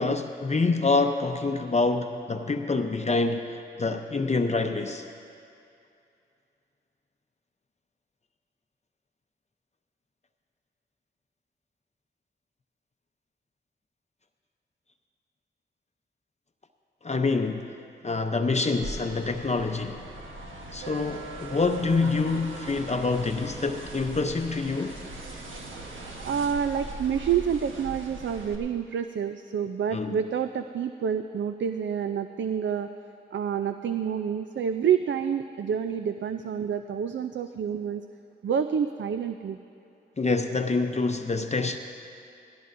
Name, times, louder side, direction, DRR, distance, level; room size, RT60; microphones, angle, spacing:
voice 1, 0.0-5.1 17.0-17.8 18.0-20.0 20.7-25.0 29.9-30.2 40.2-41.8, left 3 dB, 35° left, 5 dB, 0.7 m, -26 dB
sound 1, 18.8-28.5, right 2 dB, 90° right, 1.2 m, -40 dB
voice 2, 26.0-32.9 33.3-38.0 38.4-39.6, right 8 dB, 70° right, 9 dB, 0.4 m, -28 dB
17.5 x 16.5 x 2.6 m, 2.6 s
cardioid pair, 50°, 20 cm